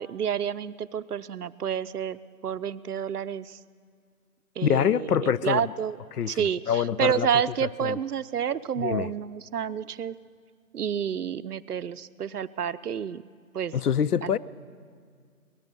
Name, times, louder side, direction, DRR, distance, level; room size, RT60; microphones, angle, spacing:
voice 1, 0.0-3.6 4.6-6.0 6.3-10.2 10.7-13.2 13.5-13.7 14.2-14.4, right 8 dB, 85° right, 0.6 m, -29 dB
voice 2, 4.6-5.7 6.1-7.3 7.6-8.0 8.8-9.1 13.7-14.4, left 8 dB, 90° left, 0.6 m, -25 dB
19.5 x 12.5 x 5.3 m
figure-of-eight pair, 175°, 45 cm